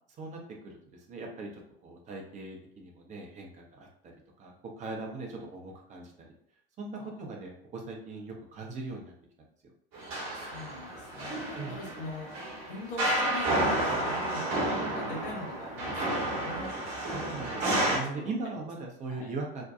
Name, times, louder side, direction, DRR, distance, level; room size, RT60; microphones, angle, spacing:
voice 1, 0.2-1.5 1.8-4.1 4.4-6.3 6.8-9.1 11.5-11.8 17.1-19.7, right 3 dB, 25° right, 0 dB, 0.6 m, -40 dB
sound 1, 9.9-18.0, right 1 dB, 45° right, 1.0 m, -31 dB
voice 2, 10.1-16.7 17.8-18.3 19.1-19.3, left 2 dB, 65° left, -1 dB, 0.8 m, -43 dB
2.6 x 2.2 x 2.4 m, 0.67 s
figure-of-eight pair, 70°, 29 cm